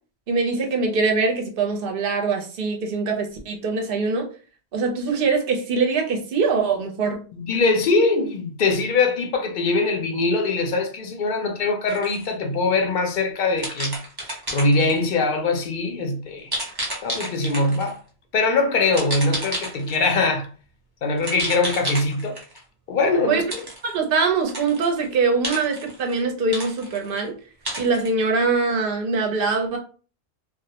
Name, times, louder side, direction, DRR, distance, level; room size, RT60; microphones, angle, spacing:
voice 1, 0.3-4.3 4.7-7.2 23.3-23.4 23.8-27.3 27.8-29.8, right 4 dB, 60° right, 0.8 m, -23 dB
voice 2, 7.3-14.0 14.5-16.5 17.0-18.0 18.3-20.5 21.0-22.4 22.9-23.6, left 3 dB, 60° left, 0.6 m, -22 dB
sound 1, 11.9-12.3 13.6-15.0 16.5-17.9 18.9-20.2 21.2-22.6 23.5-23.9 24.4-25.1 25.4-26.2 26.5-27.2 27.6-28.1, right 1 dB, 25° right, 0.6 m, -31 dB
2.3 x 2.0 x 2.7 m
omnidirectional pair, 1.1 m